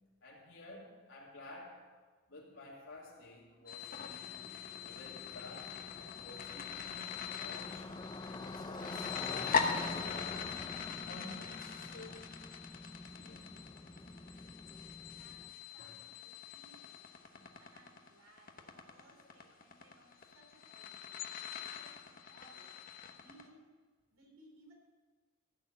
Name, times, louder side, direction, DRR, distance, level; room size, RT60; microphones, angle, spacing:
voice 1, 0.2-1.8 2.3-10.6 11.0-12.2 13.1-13.4 15.8-16.0 17.3-17.4, left 1 dB, 65° left, -4 dB, 3.6 m, -53 dB
sound 1, 3.7-23.4, left 6 dB, 40° left, 1.0 m, -42 dB
Motorcycle, 4.1-15.5, left 2 dB, 20° left, 0.6 m, -47 dB
voice 2, 15.2-17.1 17.6-22.7 23.2-23.7 24.1-24.7, right 1 dB, 80° right, 0 dB, 3.6 m, -64 dB
15.0 x 6.5 x 8.4 m, 1.4 s
head